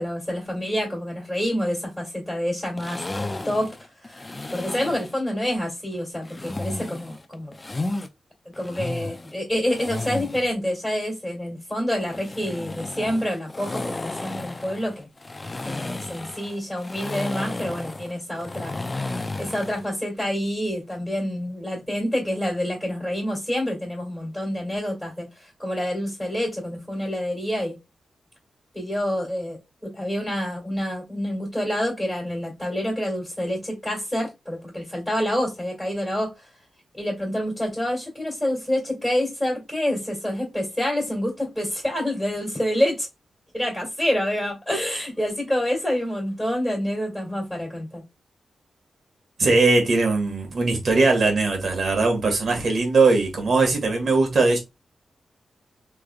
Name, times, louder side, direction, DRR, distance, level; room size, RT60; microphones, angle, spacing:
voice 1, 0.0-3.0 3.4-3.7 4.0-7.5 8.6-15.1 15.6-18.7 19.0-19.1 19.4-27.8 28.7-36.5 36.9-43.1 43.5-48.0, equal, ahead, 2.0 m, -27 dB
sound 1, 2.8-5.2 6.3-8.1 8.5-10.5 11.9-19.9, left 2 dB, 25° left, 0.4 m, -33 dB
voice 2, 49.4-54.6, right 3 dB, 65° right, 1.5 m, -20 dB
3.4 x 3.3 x 2.3 m
wide cardioid pair, 90°, 0 cm